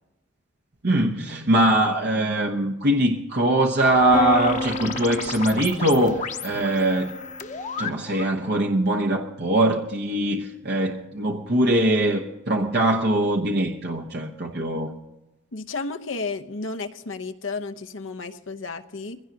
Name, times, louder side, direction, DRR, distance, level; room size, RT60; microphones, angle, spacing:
voice 1, 0.8-7.1 7.8-14.9, right 1 dB, 55° right, 1.1 m, -22 dB
sound 1, 3.8-8.4, left 5 dB, 40° left, 1.0 m, -34 dB
Piano, 4.1-9.9, right 1 dB, 20° right, 0.8 m, -35 dB
voice 2, 15.5-19.2, left 3 dB, 75° left, 0.9 m, -32 dB
22.0 x 16.5 x 2.9 m
head